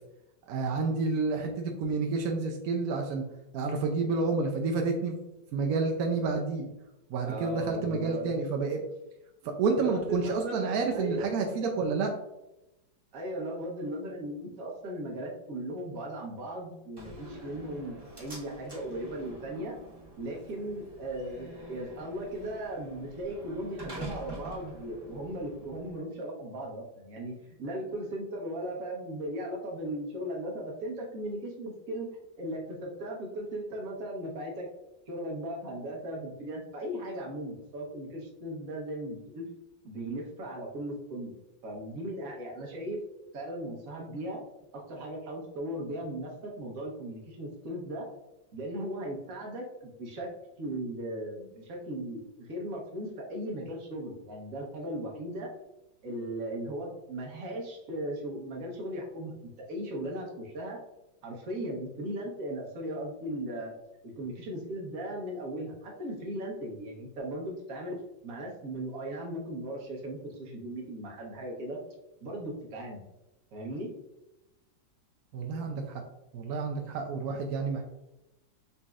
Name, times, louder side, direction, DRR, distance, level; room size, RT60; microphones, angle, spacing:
voice 1, 0.5-3.2 3.5-5.2 5.5-6.7 7.1-8.8 9.6-12.1 75.3-76.0 76.3-77.8, right 4 dB, 75° right, 2 dB, 0.8 m, -29 dB
voice 2, 7.2-8.4 9.7-11.3 13.1-19.8 20.2-32.1 32.4-34.7 35.1-39.5 39.8-41.3 41.6-43.0 43.3-44.4 44.7-48.1 48.5-50.3 50.6-55.5 56.0-60.8 61.2-63.7 64.0-68.0 68.2-71.8 72.2-73.0 73.5-73.9, right 1 dB, 55° right, -1 dB, 1.2 m, -37 dB
Slam, 17.0-26.0, right 2 dB, 15° right, 0.9 m, -46 dB
4.1 x 4.0 x 2.3 m, 0.93 s
omnidirectional pair, 2.1 m